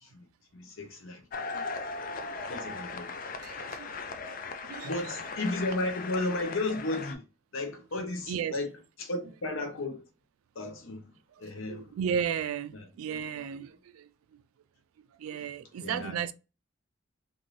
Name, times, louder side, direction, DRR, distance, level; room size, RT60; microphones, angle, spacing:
voice 1, 0.5-1.5 2.5-3.1 4.8-7.2 7.5-8.7 9.0-10.0 10.5-11.1 11.4-11.9 12.7-12.8 15.8-16.2, left 2 dB, 75° left, 0.7 m, -34 dB
sound 1, 1.3-7.2, left 4 dB, 40° left, 0.3 m, -38 dB
voice 2, 1.5-1.8 2.1-2.4 3.4-3.9 4.3-5.0 8.3-8.6 11.3-14.4 15.0-16.3, right 8 dB, 85° right, 0.3 m, -35 dB
2.6 x 2.6 x 3.1 m
head